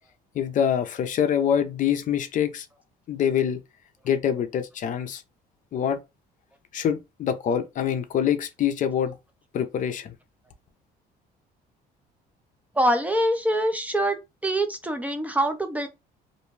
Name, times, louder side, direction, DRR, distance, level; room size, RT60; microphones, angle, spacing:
voice 1, 0.3-2.7 3.1-3.6 4.0-5.2 5.7-6.0 6.7-9.2 9.5-10.1, left 8 dB, 50° left, 0.5 m, -25 dB
voice 2, 12.7-14.2 14.4-15.9, right 1 dB, 10° right, 0.4 m, -24 dB
2.5 x 2.1 x 3.1 m
cardioid pair, 110°, 17 cm